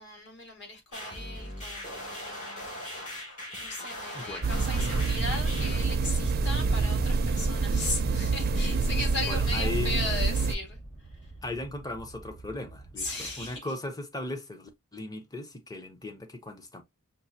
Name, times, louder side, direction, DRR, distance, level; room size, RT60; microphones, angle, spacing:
voice 1, 0.0-2.7 3.1-11.3 13.0-13.7, left 2 dB, 50° left, 1.8 m, -37 dB
sound 1, 0.9-5.9, left 1 dB, 35° left, 2.7 m, -40 dB
voice 2, 4.1-4.5 9.3-10.0 11.4-16.8, left 2 dB, 15° left, 0.7 m, -37 dB
sound 2, 4.4-10.5, right 4 dB, 45° right, 0.5 m, -27 dB
sound 3, 6.2-13.6, right 2 dB, 70° left, 2.4 m, -42 dB
5.3 x 2.5 x 2.7 m
head